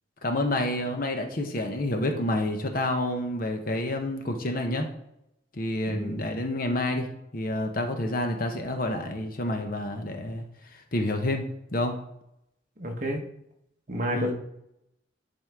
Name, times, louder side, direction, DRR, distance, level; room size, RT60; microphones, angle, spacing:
voice 1, 0.2-4.9 5.5-7.1 7.3-10.5 10.7-11.4 11.7-12.0 14.1-14.3, left 1 dB, 45° left, 5 dB, 0.9 m, -28 dB
voice 2, 5.9-6.2 12.8-13.2 13.9-14.3, equal, 40° right, 2 dB, 1.2 m, -29 dB
10.5 x 4.2 x 3.6 m, 0.79 s
head